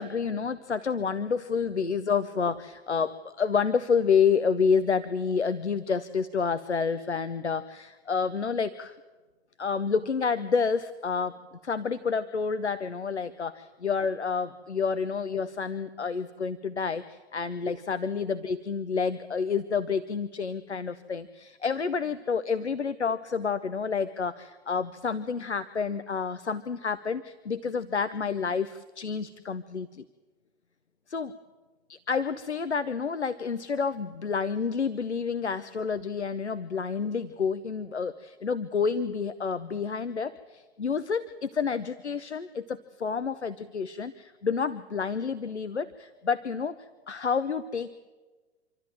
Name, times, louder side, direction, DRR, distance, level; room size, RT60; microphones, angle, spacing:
voice 1, 0.0-9.0 9.6-11.4 11.6-30.0 31.1-31.3 31.9-46.8 47.1-47.9, left 5 dB, 85° left, 13 dB, 0.8 m, -29 dB
26.0 x 13.0 x 9.1 m, 1.3 s
figure-of-eight pair, 100°, 33 cm